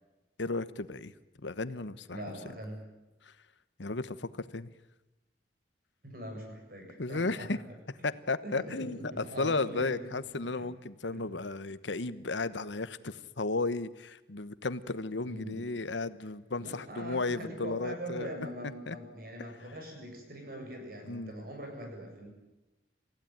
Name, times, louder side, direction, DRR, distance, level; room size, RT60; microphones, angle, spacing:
voice 1, 0.4-1.1 1.4-2.2 3.2-3.3 3.8-4.7 7.0-7.6 8.0-18.3 18.9-19.0 21.0-21.3, left 3 dB, 85° left, 14 dB, 1.1 m, -34 dB
voice 2, 2.1-2.8 6.0-7.5 8.4-10.0 10.6-10.7 11.1-11.2 15.2-15.6 16.6-22.3, equal, 55° right, 3 dB, 7.6 m, -42 dB
28.5 x 16.0 x 9.3 m, 1.0 s
head